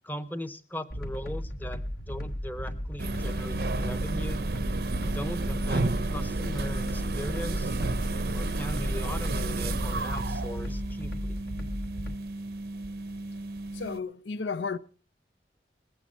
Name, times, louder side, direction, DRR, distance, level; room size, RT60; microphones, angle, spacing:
voice 1, 0.0-1.8 2.1-4.4 5.0-5.8 6.1-7.7 8.3-11.4, equal, 10° left, 0.7 m, -39 dB
sound 1, 0.9-12.1, equal, 65° left, 1.4 m, -35 dB
sound 2, 3.0-14.0, right 2 dB, 60° right, 0.6 m, -32 dB
sound 3, 6.3-10.5, equal, 50° left, 1.4 m, -50 dB
voice 2, 13.7-14.8, left 4 dB, 85° left, 0.6 m, -33 dB
21.0 x 8.9 x 4.4 m
head